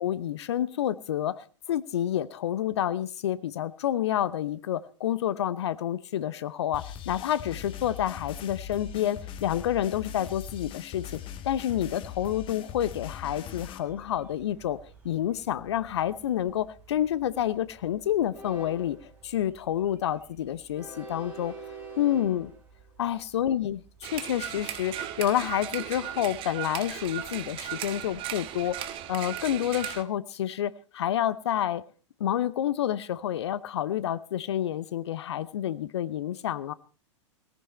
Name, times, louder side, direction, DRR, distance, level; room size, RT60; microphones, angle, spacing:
voice 1, 0.0-11.2 11.4-14.8 15.0-19.0 19.2-21.5 22.0-22.5 23.0-31.8 32.2-36.7, left 11 dB, 60° left, 0.9 m, -29 dB
sound 1, 6.7-13.8, left 10 dB, 30° left, 1.6 m, -41 dB
Train, 13.8-26.8, right 3 dB, 10° right, 7.4 m, -49 dB
sound 2, 24.0-30.0, right 12 dB, 35° right, 1.3 m, -36 dB
18.5 x 14.5 x 4.3 m
figure-of-eight pair, 95°, 16 cm